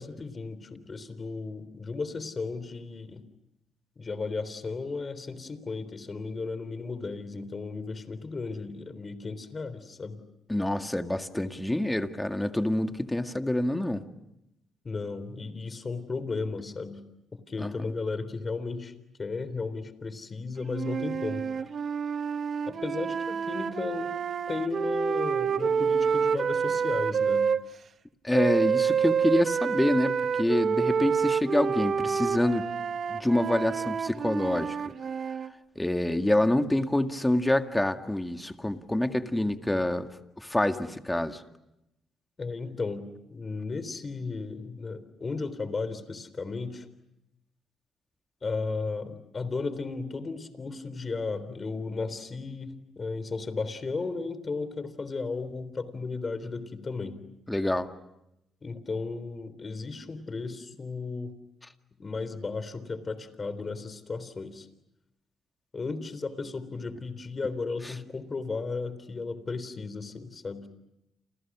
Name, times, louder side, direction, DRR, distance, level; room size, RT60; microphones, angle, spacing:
voice 1, 0.0-3.2 4.0-10.2 14.8-17.0 17.3-18.9 19.2-21.7 22.7-24.1 24.5-27.5 42.4-46.9 48.4-57.2 58.6-61.3 62.0-64.7 65.7-70.7, left 4 dB, 35° left, 14 dB, 3.6 m, -35 dB
voice 2, 10.5-14.0 17.6-17.7 28.2-32.7 33.1-34.8 35.8-40.1 40.4-41.4 57.5-57.9, left 1 dB, 10° left, 6 dB, 2.0 m, -26 dB
sound 1, 20.7-27.6 28.3-35.5, right 6 dB, 50° right, 1.1 m, -28 dB
29.5 x 29.0 x 6.2 m, 0.86 s
cardioid pair, 90°, 0 cm